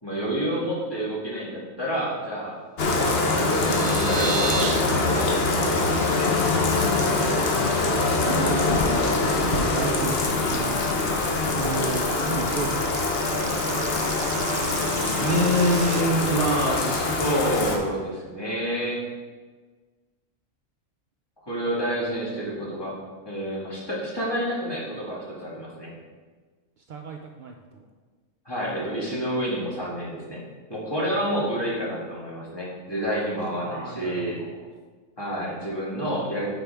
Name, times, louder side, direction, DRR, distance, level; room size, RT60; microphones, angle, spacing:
voice 1, 0.0-2.6 3.1-5.3 5.6-6.3 15.2-19.0 21.4-22.9 23.2-25.9 28.4-30.4 30.7-34.4 35.2-36.5, equal, 20° left, -6 dB, 1.7 m, -28 dB
Bathtub (filling or washing), 2.8-17.8, left 3 dB, 50° left, 1.0 m, -24 dB
sound 1, 3.2-4.8 5.2-5.4 5.8-5.9 6.2-6.5 6.8-7.3 7.7-16.0, right 5 dB, 55° right, 0.8 m, -35 dB
voice 2, 7.8-11.1 11.5-13.3 26.9-27.9 33.5-34.7, right 4 dB, 85° right, 3 dB, 0.4 m, -34 dB
9.0 x 4.5 x 3.4 m, 1.4 s
omnidirectional pair, 1.4 m